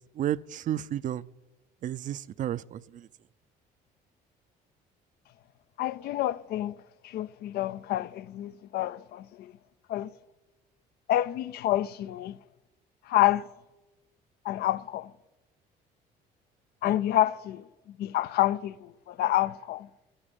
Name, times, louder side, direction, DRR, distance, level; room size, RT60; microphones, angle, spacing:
voice 1, 0.2-1.2 1.8-3.1 16.8-16.9, right 11 dB, 50° right, 0.5 m, -32 dB
voice 2, 5.8-6.8 7.0-9.5 9.9-10.1 11.1-12.4 13.1-13.5 14.4-15.1 16.8-19.9, left 14 dB, 70° left, 0.5 m, -28 dB
13.0 x 11.5 x 8.9 m
cardioid pair, 110°, 17 cm